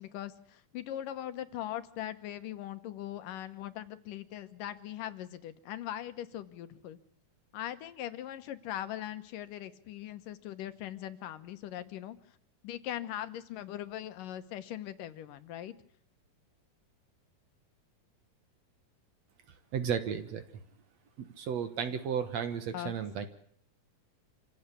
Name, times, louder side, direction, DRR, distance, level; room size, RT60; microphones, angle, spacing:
voice 1, 0.0-7.0 7.5-12.2 12.6-15.7 22.7-22.9, left 12 dB, 75° left, 11 dB, 2.7 m, -40 dB
voice 2, 19.7-20.4 21.2-23.3, right 7 dB, 60° right, 10 dB, 2.2 m, -33 dB
26.5 x 16.0 x 8.5 m, 0.64 s
omnidirectional pair, 3.9 m